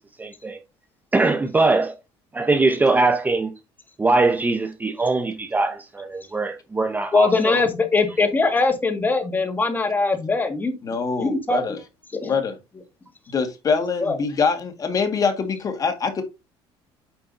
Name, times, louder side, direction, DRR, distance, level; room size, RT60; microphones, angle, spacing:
voice 1, 0.2-0.6 1.1-2.0 2.3-3.5 4.0-7.6, right 3 dB, 15° right, 0.8 m, -21 dB
voice 2, 7.1-10.8 11.2-11.6 12.2-12.3 14.0-14.2, left 3 dB, 15° left, 1.9 m, -21 dB
voice 3, 10.8-11.8 12.2-12.5 13.3-16.2, left 5 dB, 35° left, 1.7 m, -24 dB
8.7 x 5.7 x 2.7 m
cardioid pair, 120°, 10 cm